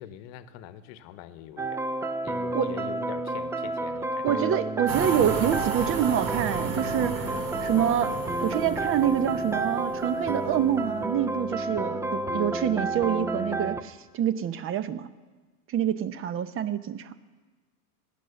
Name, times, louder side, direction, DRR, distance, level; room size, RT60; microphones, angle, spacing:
voice 1, 0.0-1.8 2.2-4.4, left 12 dB, 50° left, 12 dB, 1.0 m, -43 dB
sound 1, 1.6-13.8, right 2 dB, 5° right, 0.5 m, -30 dB
voice 2, 4.2-8.1 8.4-15.1 15.7-17.1, right 9 dB, 30° right, 14 dB, 0.8 m, -27 dB
sound 2, 4.9-11.1, right 5 dB, 45° right, 2.5 m, -34 dB
15.5 x 10.0 x 7.0 m, 1.3 s
hypercardioid pair, 110°, 45 cm